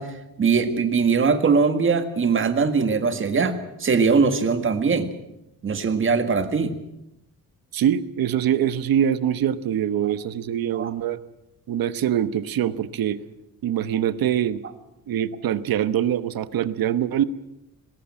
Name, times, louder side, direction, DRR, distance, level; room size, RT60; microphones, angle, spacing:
voice 1, 0.0-5.1 5.6-6.8 10.0-10.1 10.7-10.9, right 5 dB, 35° right, 8 dB, 1.8 m, -21 dB
voice 2, 7.7-11.2 11.7-13.2 13.6-14.6 15.1-17.2, right 10 dB, 80° right, 14 dB, 1.1 m, -23 dB
20.0 x 17.5 x 8.8 m, 0.89 s
wide cardioid pair, 175°, 35 cm